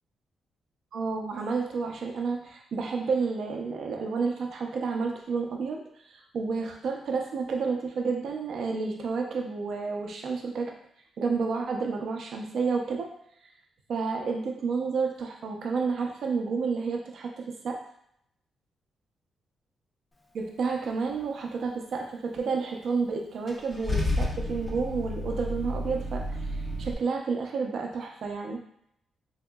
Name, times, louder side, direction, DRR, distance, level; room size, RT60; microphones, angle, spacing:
voice 1, 0.9-5.8 6.1-10.7 11.2-13.1 13.9-17.8 20.3-28.6, right 4 dB, 55° right, 2 dB, 0.5 m, -30 dB
Car / Engine starting / Idling, 23.5-26.9, left 1 dB, 20° left, 0.4 m, -31 dB
3.5 x 2.8 x 2.2 m, 0.71 s
wide cardioid pair, 170°, 0 cm